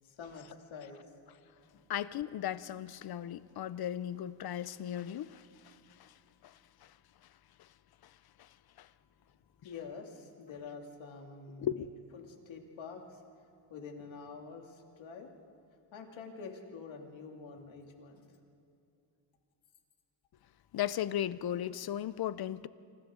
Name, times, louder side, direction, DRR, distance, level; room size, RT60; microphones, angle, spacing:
voice 1, 0.0-1.2 1.7-1.8 9.6-11.7 12.1-15.3 15.9-18.3, left 5 dB, 65° left, 2.8 m, -47 dB
voice 2, 1.9-6.1 6.4-6.5 8.4-8.5 8.8-8.9 11.6-11.9 20.7-22.7, left 11 dB, 50° left, 0.6 m, -36 dB
29.0 x 27.5 x 3.8 m
cardioid pair, 155°, 50 cm